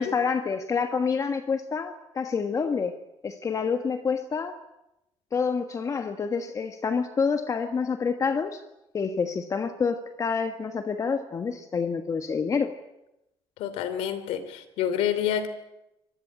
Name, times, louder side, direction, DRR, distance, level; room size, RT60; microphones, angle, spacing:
voice 1, 0.0-3.0 3.2-4.6 5.3-8.6 8.9-12.7, left 5 dB, 35° left, 7 dB, 1.4 m, -27 dB
voice 2, 13.6-15.5, left 9 dB, 90° left, 12 dB, 3.0 m, -28 dB
24.5 x 20.0 x 8.7 m, 0.90 s
cardioid pair, 120°, 10 cm